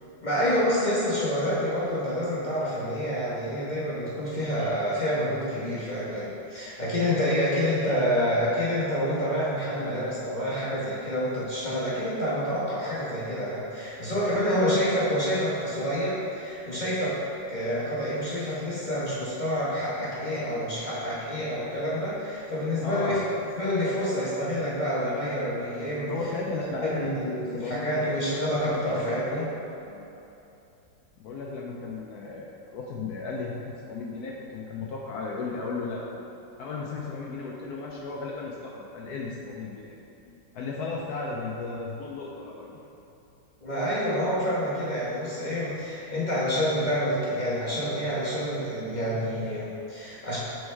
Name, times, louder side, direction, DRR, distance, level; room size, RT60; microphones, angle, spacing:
voice 1, 0.2-17.2 17.5-23.2 23.6-26.1 26.9-29.5 43.6-50.4, equal, 30° left, -9 dB, 0.9 m, -28 dB
voice 2, 22.8-23.2 26.1-28.2 28.6-29.2 29.9-30.0 31.2-36.2 36.6-40.0 40.5-42.9, left 3 dB, 70° left, -2 dB, 0.9 m, -35 dB
7.8 x 4.5 x 3.3 m, 2.9 s
omnidirectional pair, 2.1 m